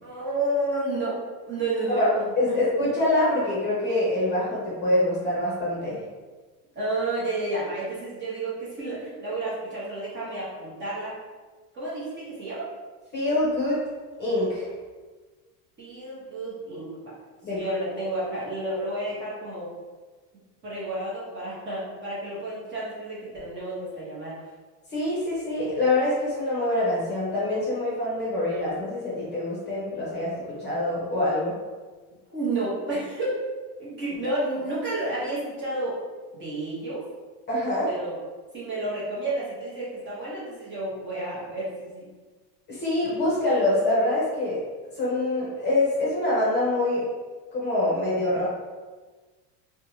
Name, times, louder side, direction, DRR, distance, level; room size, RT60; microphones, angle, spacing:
voice 1, 0.0-1.2 1.5-2.6 6.8-11.2 11.7-12.7 15.8-16.9 17.5-19.7 20.6-24.4 32.3-33.4 33.8-36.0 36.3-37.0 37.9-38.2 38.5-42.1, right 2 dB, 25° right, -8 dB, 0.8 m, -31 dB
voice 2, 2.4-6.0 13.1-13.8 14.2-14.7 17.4-17.8 24.9-31.5 37.5-37.9 42.7-44.6 45.0-47.0 47.5-48.5, left 1 dB, 25° left, -7 dB, 0.7 m, -25 dB
2.6 x 2.2 x 3.0 m, 1.3 s
cardioid pair, 155°, 44 cm